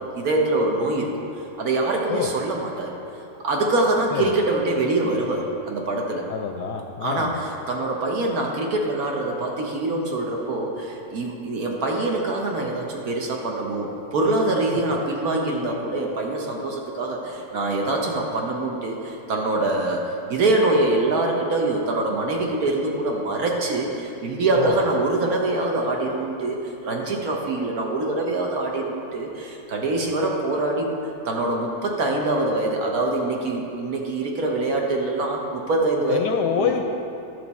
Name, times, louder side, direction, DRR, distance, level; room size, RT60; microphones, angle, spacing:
voice 1, 0.1-1.2 1.6-3.0 3.4-6.3 7.0-20.0 20.3-31.0 31.2-36.2 36.6-36.8, right 2 dB, 60° right, 0 dB, 1.2 m, -24 dB
voice 2, 6.3-7.4 24.6-24.8 36.1-36.8, left 8 dB, 75° left, 4 dB, 1.0 m, -26 dB
11.5 x 6.4 x 4.1 m, 2.8 s
omnidirectional pair, 2.1 m